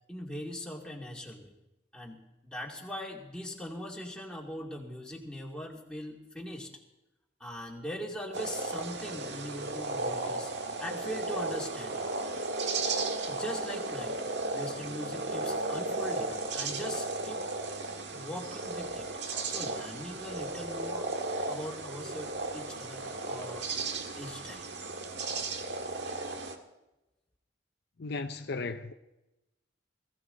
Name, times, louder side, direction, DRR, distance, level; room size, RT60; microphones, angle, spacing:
voice 1, 0.1-1.5 1.9-2.2 2.4-6.7 7.4-10.5 10.8-12.1 13.3-14.2 14.5-17.4 18.1-19.1 19.4-21.1 21.5-23.7 24.2-24.7, equal, 5° left, 2.5 m, -41 dB
sound 1, 8.3-26.6, right 3 dB, 65° right, 1.6 m, -35 dB
voice 2, 28.0-28.9, left 3 dB, 60° left, 0.7 m, -35 dB
20.5 x 15.5 x 4.0 m
head